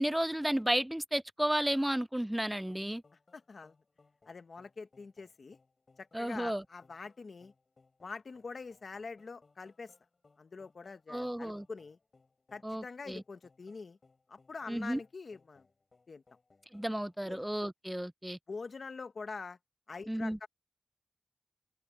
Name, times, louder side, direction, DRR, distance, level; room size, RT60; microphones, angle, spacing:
voice 1, 0.0-3.0 6.1-6.6 11.1-11.6 12.6-13.2 14.7-15.0 16.7-18.4 20.1-20.4, right 1 dB, 10° right, 0.4 m, -33 dB
sound 1, 2.3-17.4, left 3 dB, 60° left, 6.0 m, -68 dB
voice 2, 3.3-3.8 4.3-5.6 6.0-7.5 8.0-9.9 10.4-12.0 12.5-14.0 14.3-15.7 16.1-16.2 17.2-17.4 18.5-19.6 19.9-20.5, left 4 dB, 80° left, 0.9 m, -45 dB
open air
wide cardioid pair, 90°, 0 cm